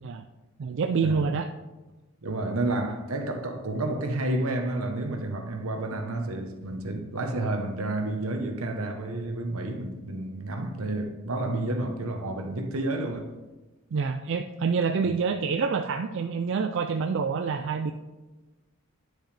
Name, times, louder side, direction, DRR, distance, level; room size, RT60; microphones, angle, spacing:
voice 1, 0.6-1.5 13.9-17.9, right 5 dB, 55° right, 0.4 m, -27 dB
voice 2, 2.2-13.3 15.0-15.2, right 2 dB, 80° right, 1.0 m, -30 dB
10.0 x 6.3 x 3.3 m
head